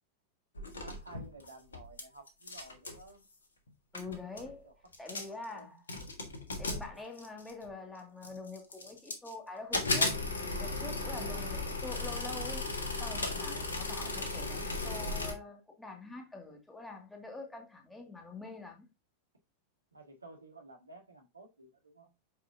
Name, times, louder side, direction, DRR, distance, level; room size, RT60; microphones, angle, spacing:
sound 1, 0.5-2.0 2.3-3.0 3.7-3.8 3.9-4.5 4.9-5.4 5.9-7.6 8.2-9.3 9.7-15.3, left 2 dB, 70° left, 1.5 m, -36 dB
voice 1, 0.8-3.2 4.6-4.7 5.0-5.8 19.9-22.1, right 2 dB, 80° right, 1.8 m, -53 dB
voice 2, 3.9-4.7 5.0-5.8 6.6-10.2 10.6-18.9, left 3 dB, 5° left, 2.2 m, -45 dB
8.3 x 4.9 x 2.7 m
figure-of-eight pair, 90°, 0 cm